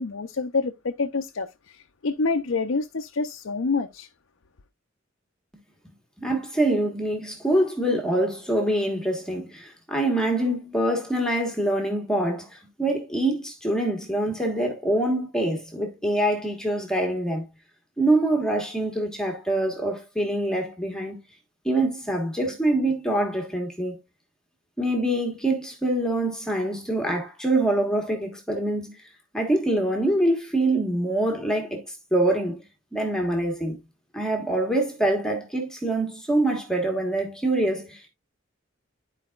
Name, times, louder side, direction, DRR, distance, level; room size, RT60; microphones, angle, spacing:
voice 1, 0.0-4.1, left 4 dB, 80° left, 0.6 m, -27 dB
voice 2, 6.2-17.4 18.0-21.2 21.6-23.9 24.8-29.0 29.3-32.6 32.9-33.8 34.1-38.1, right 1 dB, 5° left, 1.4 m, -25 dB
12.5 x 4.8 x 2.4 m
head